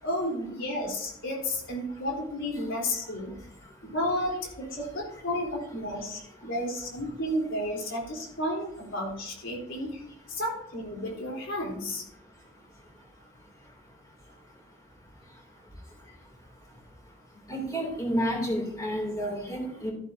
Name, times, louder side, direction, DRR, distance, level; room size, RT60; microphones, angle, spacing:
voice 1, 0.0-3.4 3.8-10.0 10.3-12.0, left 1 dB, 80° left, -1 dB, 3.5 m, -32 dB
voice 2, 17.5-19.9, equal, 15° left, 0 dB, 2.7 m, -30 dB
12.5 x 11.0 x 2.7 m, 0.73 s
head